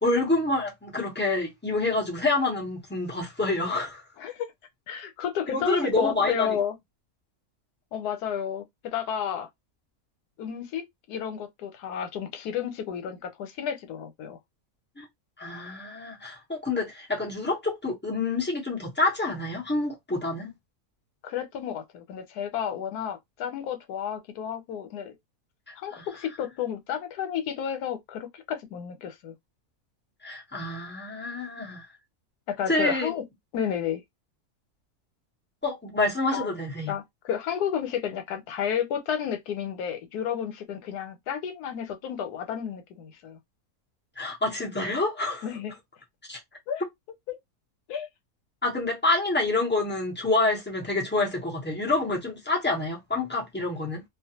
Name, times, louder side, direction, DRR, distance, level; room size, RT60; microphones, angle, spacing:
voice 1, 0.0-4.0 5.5-6.6 15.0-15.1 15.4-20.5 25.7-26.1 30.2-31.9 32.7-33.1 35.6-36.9 44.2-45.5 46.3-46.4 48.6-54.0, left 2 dB, 10° left, 0.6 m, -27 dB
voice 2, 4.2-4.5 4.9-6.7 7.9-9.5 10.4-14.4 21.2-25.1 25.8-29.3 32.5-33.2 33.5-34.0 36.3-36.5 36.9-43.4 45.4-45.8 46.7-46.8 47.3-47.4 47.9-48.1, left 8 dB, 85° left, 1.2 m, -31 dB
2.5 x 2.2 x 2.8 m
omnidirectional pair, 1.6 m